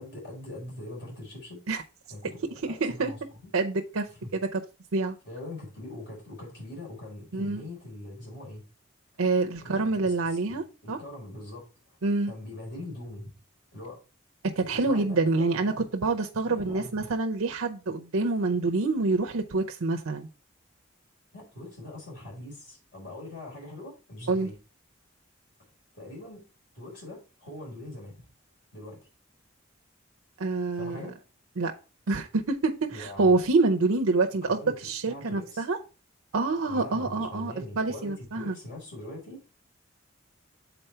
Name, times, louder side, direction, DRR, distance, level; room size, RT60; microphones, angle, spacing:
voice 1, 0.0-1.6 2.1-3.5 4.2-4.3 5.2-8.6 9.6-12.0 12.3-13.3 13.7-14.0 14.6-15.8 16.4-17.1 21.3-24.6 25.9-26.4 26.7-28.2 28.7-29.1 30.8-31.1 32.9-33.4 34.5-35.6 36.7-39.4, left 1 dB, 55° left, -2 dB, 4.3 m, -42 dB
voice 2, 2.8-3.1 3.5-4.1 4.5-4.6 4.9-5.2 7.3-7.6 9.2-11.0 12.0-12.3 14.6-20.3 24.3-24.5 30.4-31.0 31.6-31.7 32.1-35.8 36.3-38.5, right 3 dB, 90° right, 4 dB, 0.7 m, -26 dB
6.8 x 4.2 x 4.3 m, 0.33 s
head